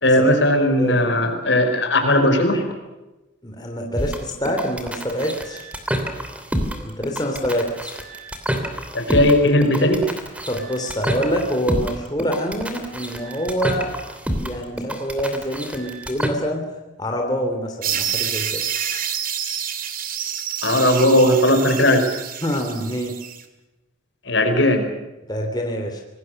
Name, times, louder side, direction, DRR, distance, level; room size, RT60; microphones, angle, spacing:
voice 1, 0.0-2.6 8.9-10.0 20.6-22.1 24.3-24.9, left 1 dB, 65° left, 5 dB, 5.2 m, -17 dB
voice 2, 0.8-1.1 2.4-2.6 3.4-5.7 6.8-8.0 10.5-13.9 14.4-16.6 17.0-18.6 22.4-23.1 25.3-26.0, equal, 20° left, 2 dB, 3.3 m, -26 dB
sound 1, 3.9-16.3, equal, 5° right, 3.0 m, -28 dB
sound 2, 17.8-23.4, right 8 dB, 45° right, 2.4 m, -28 dB
26.0 x 20.0 x 6.7 m, 1.0 s
head